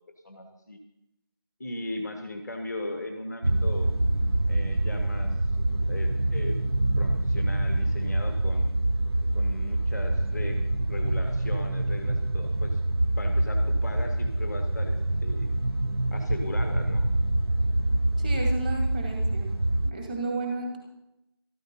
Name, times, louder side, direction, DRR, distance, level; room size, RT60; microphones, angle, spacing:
voice 1, 0.2-0.8 1.6-3.9 4.5-5.4 5.7-6.6 7.0-8.8 9.3-12.8 13.2-15.5 16.1-17.1, left 2 dB, 5° left, 4 dB, 0.7 m, -38 dB
sound 1, 3.4-19.9, right 1 dB, 85° right, 1.1 m, -26 dB
voice 2, 18.2-19.5 19.8-20.8, right 2 dB, 20° right, 1 dB, 2.5 m, -32 dB
13.0 x 13.0 x 5.5 m, 0.84 s
figure-of-eight pair, 170°, 13 cm